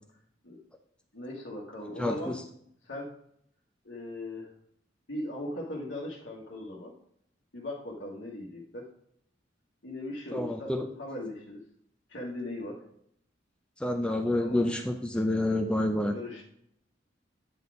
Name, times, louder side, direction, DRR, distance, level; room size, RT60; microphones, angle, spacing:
voice 1, 1.1-2.3 2.8-3.1 3.8-4.5 5.1-6.9 7.5-8.9 9.8-10.7 11.0-11.6 12.1-12.8 14.3-14.7 16.1-16.4, left 1 dB, 85° left, -4 dB, 1.4 m, -38 dB
voice 2, 2.0-2.4 10.3-10.9 13.8-16.1, left 1 dB, 5° left, 4 dB, 0.5 m, -28 dB
9.4 x 4.1 x 4.7 m, 0.69 s
head